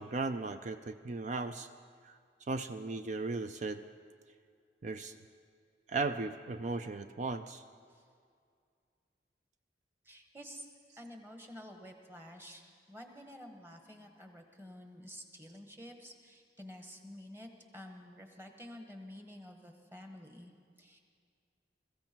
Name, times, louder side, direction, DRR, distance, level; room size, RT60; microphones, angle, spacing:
voice 1, 0.0-1.7 2.0-2.2 2.5-3.8 4.8-5.2 5.9-7.6, right 3 dB, 40° right, 9 dB, 0.4 m, -36 dB
voice 2, 10.0-10.7 11.0-21.0, equal, 15° right, 4 dB, 1.5 m, -50 dB
21.5 x 14.5 x 4.5 m, 2.2 s
head